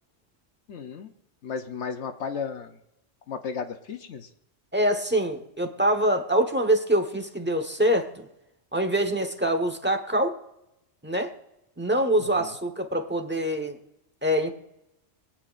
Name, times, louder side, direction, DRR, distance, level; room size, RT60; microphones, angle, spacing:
voice 1, 0.7-1.1 1.4-2.8 3.3-4.3 12.2-12.5, left 6 dB, 65° left, 7 dB, 1.1 m, -34 dB
voice 2, 4.7-8.3 8.7-10.4 11.0-11.3 11.8-13.8 14.2-14.5, right 1 dB, 10° right, 6 dB, 1.1 m, -24 dB
24.5 x 8.9 x 2.5 m, 0.88 s
omnidirectional pair, 1.3 m